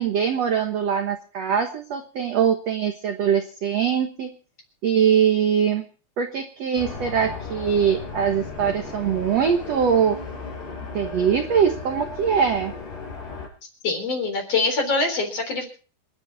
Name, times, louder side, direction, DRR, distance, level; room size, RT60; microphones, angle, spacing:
voice 1, 0.0-4.3 4.8-5.9 6.2-10.2 10.9-12.7, right 7 dB, 60° right, 5 dB, 1.7 m, -22 dB
sound 1, 6.8-13.5, left 4 dB, 85° left, 6.3 m, -35 dB
voice 2, 13.8-15.7, left 3 dB, 40° left, 4 dB, 4.6 m, -24 dB
27.5 x 10.5 x 4.1 m, 0.38 s
omnidirectional pair, 4.7 m